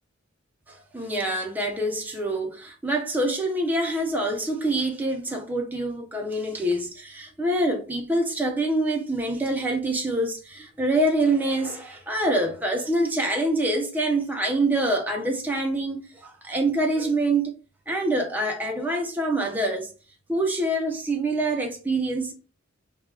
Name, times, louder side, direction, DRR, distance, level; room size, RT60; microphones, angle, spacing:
voice 1, 0.7-17.5 17.9-19.9 20.3-22.3, right 1 dB, 10° right, 0.4 m, -25 dB
2.2 x 2.1 x 3.6 m
head